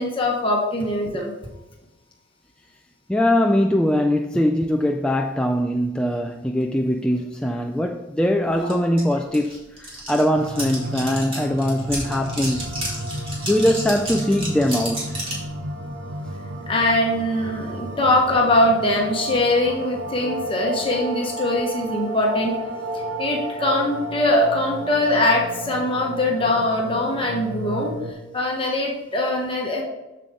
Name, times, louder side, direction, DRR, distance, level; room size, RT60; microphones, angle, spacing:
voice 1, 0.0-1.3 8.6-8.7 16.7-22.6 22.9-27.9 28.3-29.8, left 1 dB, 25° left, 1.3 m, -22 dB
voice 2, 3.1-12.8 13.5-15.1, left 1 dB, 5° left, 0.3 m, -21 dB
sound 1, 8.7-8.8 9.0-15.5, right 1 dB, 30° right, 2.3 m, -32 dB
sound 2, 10.3-28.1, right 1 dB, 85° right, 1.0 m, -32 dB
7.5 x 6.8 x 3.7 m
head